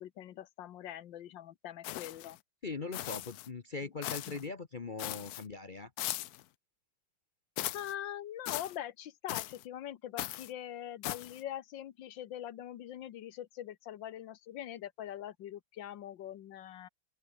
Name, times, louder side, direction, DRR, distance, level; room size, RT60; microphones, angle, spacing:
voice 1, 0.0-2.4 3.8-3.9 4.2-4.4 7.7-16.9, left 11 dB, 65° left, 1.6 m, -43 dB
sound 1, 1.8-2.4 2.9-3.5 4.0-4.4 5.0-5.4 6.0-6.4 7.6-7.9 8.5-8.8 9.3-9.6 10.2-10.5 11.0-11.4, left 15 dB, 85° left, 0.8 m, -39 dB
voice 2, 2.6-5.9, left 4 dB, 50° left, 0.6 m, -40 dB
open air
omnidirectional pair, 2.3 m